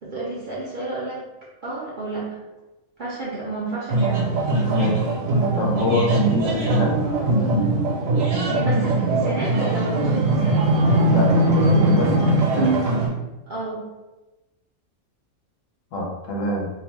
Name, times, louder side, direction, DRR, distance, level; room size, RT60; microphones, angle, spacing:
voice 1, 0.0-1.2 1.6-2.3 3.0-4.3 8.5-10.6 13.5-13.8, right 2 dB, 55° right, -7 dB, 0.5 m, -30 dB
sound 1, 3.9-13.1, right 2 dB, 75° right, 1.1 m, -20 dB
voice 2, 4.7-5.2 5.5-6.9 11.0-11.3 11.6-12.8 15.9-16.7, left 1 dB, 75° left, -1 dB, 1.0 m, -25 dB
2.7 x 2.1 x 3.1 m, 1.1 s
omnidirectional pair, 1.4 m